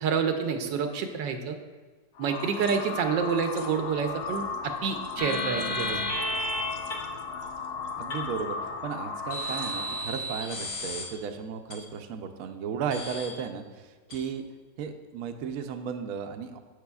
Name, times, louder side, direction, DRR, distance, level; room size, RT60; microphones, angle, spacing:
voice 1, 0.0-1.5 2.2-6.0, right 6 dB, 85° right, 6 dB, 1.4 m, -28 dB
sound 1, 2.2-10.2, left 4 dB, 85° left, 1.4 m, -36 dB
sound 2, 5.2-6.6 6.9-7.0 8.1-8.2 9.3-11.0 11.7-11.8 12.9-13.3 14.1-14.2, left 1 dB, 65° left, 2.0 m, -32 dB
voice 2, 8.0-14.4 14.8-16.6, right 6 dB, 70° right, 6 dB, 0.8 m, -35 dB
9.6 x 7.4 x 2.3 m, 1.4 s
omnidirectional pair, 1.9 m